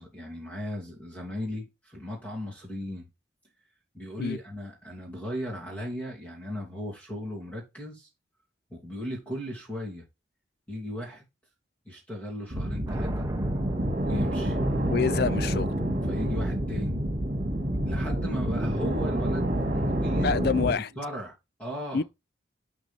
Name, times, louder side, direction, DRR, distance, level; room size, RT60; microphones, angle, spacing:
voice 1, 0.0-3.1 3.9-8.1 8.7-10.1 10.7-11.2 11.8-13.3 14.0-14.6 16.0-17.0 17.8-20.4 20.7-22.0, left 1 dB, 10° left, 2.7 m, -37 dB
sound 1, 12.5-20.7, right 1 dB, 45° right, 2.0 m, -28 dB
sound 2, 12.9-15.0, right 1 dB, 15° right, 1.0 m, -38 dB
voice 2, 14.9-15.7 20.2-20.9 21.9-22.0, left 5 dB, 55° left, 0.4 m, -26 dB
11.5 x 3.9 x 3.4 m
head